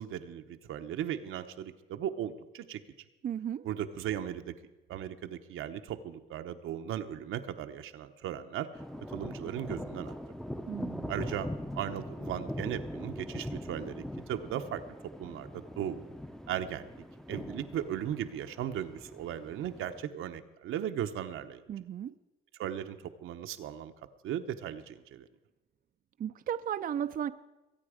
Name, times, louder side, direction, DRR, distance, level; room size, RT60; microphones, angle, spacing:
voice 1, 0.0-2.8 3.6-4.5 4.9-8.7 9.1-10.1 11.1-11.5 11.7-14.8 15.2-16.1 16.5-16.9 17.3-21.6 22.6-23.9 24.2-25.2, right 10 dB, 85° right, 7 dB, 0.9 m, -37 dB
voice 2, 3.2-3.7 10.7-11.1 21.7-22.1 26.2-27.3, right 9 dB, 45° right, 11 dB, 0.4 m, -35 dB
sound 1, 8.7-20.0, left 1 dB, ahead, 0.6 m, -41 dB
22.5 x 8.9 x 5.0 m, 1.1 s
cardioid pair, 100°, 21 cm